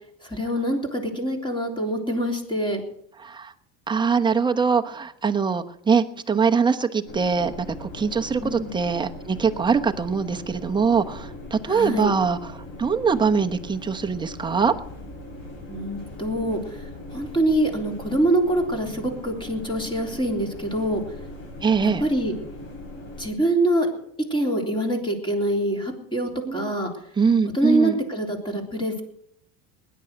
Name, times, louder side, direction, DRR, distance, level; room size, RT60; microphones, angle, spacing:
voice 1, 0.3-2.8 8.4-8.8 11.7-12.2 15.7-16.6 17.1-21.0 21.8-22.3 23.2-23.9 24.3-26.9 27.5-29.0, right 1 dB, 15° left, 2 dB, 3.4 m, -25 dB
voice 2, 3.9-7.5 7.8-12.4 12.8-14.7 21.6-22.0 26.5-26.7 27.2-28.0, right 5 dB, 15° right, 5 dB, 1.0 m, -22 dB
sound 1, 7.0-23.3, left 1 dB, 60° left, 7.7 m, -40 dB
19.5 x 10.5 x 6.4 m, 0.72 s
cardioid pair, 135°, 35 cm